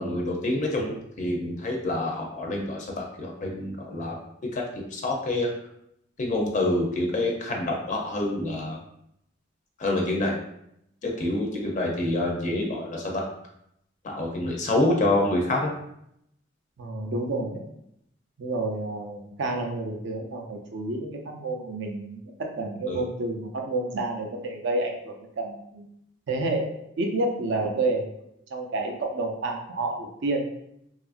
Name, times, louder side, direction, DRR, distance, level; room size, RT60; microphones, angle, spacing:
voice 1, 0.0-4.2 4.5-5.5 6.2-8.8 9.8-10.3 11.0-13.2 14.0-15.7 22.9-23.0, left 1 dB, 40° left, 0 dB, 0.4 m, -27 dB
voice 2, 16.8-17.7 18.4-25.9 26.3-28.1 28.5-30.4, right 2 dB, 65° right, 2 dB, 0.5 m, -29 dB
2.7 x 2.4 x 2.4 m, 0.76 s
head